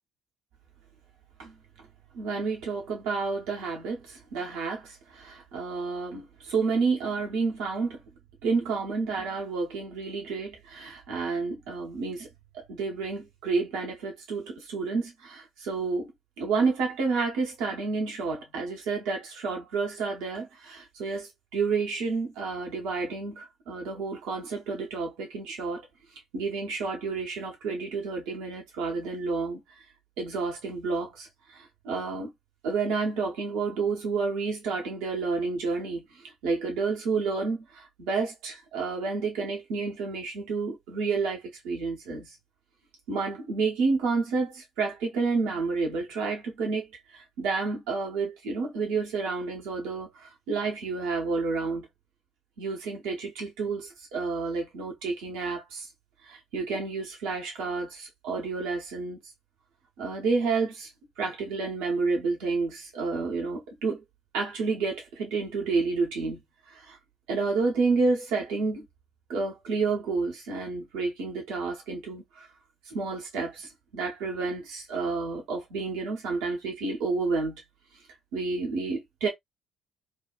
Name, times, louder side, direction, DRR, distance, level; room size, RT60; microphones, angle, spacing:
voice 1, 2.1-8.0 8.4-12.3 12.5-16.1 16.4-25.8 26.3-29.8 30.2-32.3 32.6-42.3 43.1-46.9 47.1-51.9 52.6-55.9 56.2-59.2 60.0-60.9 61.2-64.0 64.3-66.4 66.7-67.0 67.3-68.8 69.3-72.5 72.9-77.6 78.3-79.3, right 4 dB, 65° right, 1.0 m, -30 dB
2.7 x 2.3 x 2.3 m
figure-of-eight pair, 45°, 0 cm